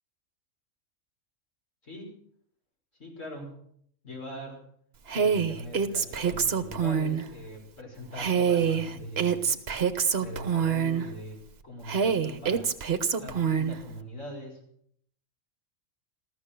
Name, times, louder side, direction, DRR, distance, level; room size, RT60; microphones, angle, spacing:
voice 1, 3.0-3.5 4.0-4.6 5.1-9.5 10.2-11.4 11.6-12.7 13.2-14.6, equal, 65° left, -1 dB, 6.1 m, -41 dB
Female speech woman speaking, 5.1-7.2 8.2-11.1 11.9-13.8, right 7 dB, 50° right, 1.2 m, -26 dB
14.5 x 14.5 x 6.7 m, 0.68 s
omnidirectional pair, 1.4 m